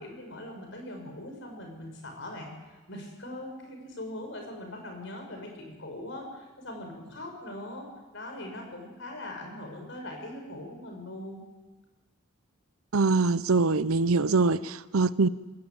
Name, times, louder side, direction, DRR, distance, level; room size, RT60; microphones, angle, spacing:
voice 1, 0.0-7.9 8.1-11.5, left 1 dB, 60° left, 6.0 m, -41 dB
voice 2, 12.9-15.3, right 3 dB, 85° right, 0.7 m, -23 dB
20.5 x 18.5 x 8.8 m
head